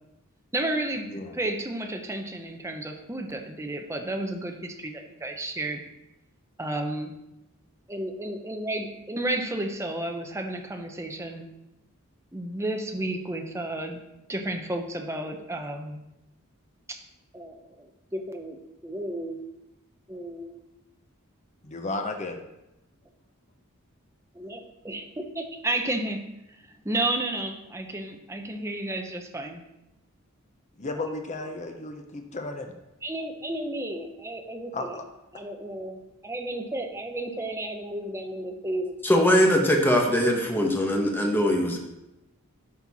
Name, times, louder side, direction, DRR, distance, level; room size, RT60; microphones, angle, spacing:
voice 1, 0.5-1.1 1.3-5.8 6.6-7.1 7.9-11.5 12.3-14.0 14.3-16.0 16.9-17.0 17.3-18.6 18.8-19.4 20.1-20.6 24.3-26.2 26.7-29.6 33.0-35.0 35.3-39.2, right 1 dB, 15° right, 4 dB, 0.9 m, -32 dB
voice 2, 21.6-22.4 30.8-32.7 34.7-35.0, left 2 dB, 35° left, 4 dB, 0.8 m, -34 dB
voice 3, 39.0-41.8, equal, 10° left, 0 dB, 1.3 m, -21 dB
11.5 x 4.5 x 4.2 m, 0.91 s
head